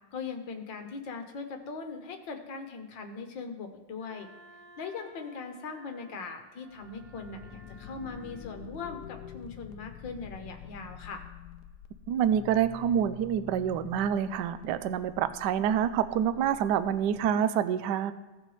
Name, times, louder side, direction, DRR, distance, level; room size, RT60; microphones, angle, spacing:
voice 1, 0.1-4.3 4.8-11.2, left 4 dB, 60° left, 5 dB, 1.7 m, -40 dB
Wind instrument woodwind instrument, 4.0-8.5, right 1 dB, 30° left, 2.1 m, -56 dB
sound 1, 6.7-17.3, left 8 dB, 90° left, 0.8 m, -47 dB
voice 2, 12.1-18.1, right 9 dB, 75° right, 12 dB, 1.0 m, -27 dB
16.5 x 6.6 x 3.2 m, 1.3 s
omnidirectional pair, 2.4 m